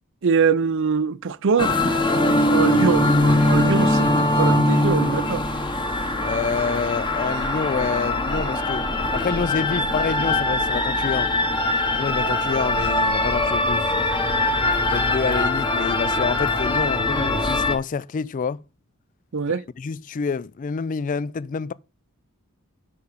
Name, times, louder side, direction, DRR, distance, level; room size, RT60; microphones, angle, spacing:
voice 1, 0.2-1.7 2.5-5.4 19.3-19.6, right 5 dB, 55° right, 0.5 m, -23 dB
sound 1, 1.6-17.8, left 1 dB, 20° left, 1.0 m, -22 dB
voice 2, 6.2-8.8 9.1-11.3 12.0-13.9 14.9-17.0 17.4-18.6 19.8-21.7, left 5 dB, 35° left, 0.3 m, -27 dB
6.8 x 5.4 x 5.1 m
head